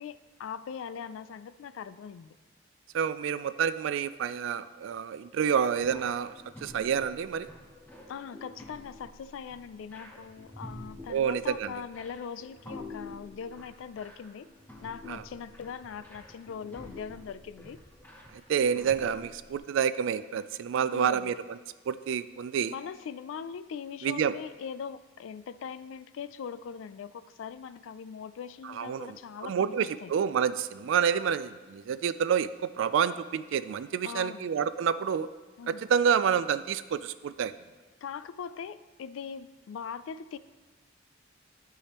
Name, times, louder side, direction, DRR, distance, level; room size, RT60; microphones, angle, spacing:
voice 1, 0.0-2.3 8.1-14.5 14.8-17.8 20.9-21.3 22.7-30.1 34.0-34.5 35.6-35.9 38.0-40.4, left 7 dB, 85° left, 14 dB, 0.3 m, -41 dB
voice 2, 2.9-6.3 6.6-7.5 11.1-11.7 15.1-15.2 18.5-21.6 21.9-22.7 24.0-24.3 28.6-29.2 29.4-35.3 35.7-37.5, right 7 dB, 75° right, 14 dB, 0.3 m, -28 dB
sound 1, 5.8-19.6, left 2 dB, 10° left, 0.8 m, -48 dB
12.0 x 4.9 x 3.0 m, 1.3 s
head